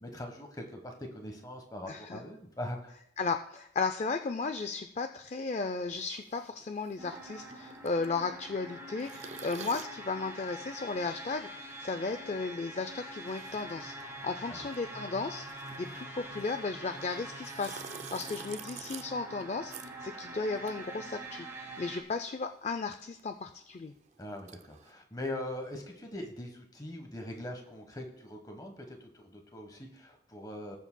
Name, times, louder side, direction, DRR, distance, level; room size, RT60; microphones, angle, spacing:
voice 1, 0.0-2.9 14.5-14.7 24.2-30.8, left 1 dB, 20° left, 3 dB, 1.1 m, -42 dB
voice 2, 1.9-2.2 3.2-23.9, left 4 dB, 35° left, 8 dB, 0.3 m, -35 dB
sound 1, 6.0-21.8 22.0-24.9, right 7 dB, 35° right, 0.4 m, -50 dB
sound 2, 7.0-22.0, right 1 dB, 15° right, 1.3 m, -45 dB
19.5 x 7.3 x 2.2 m, 0.79 s
head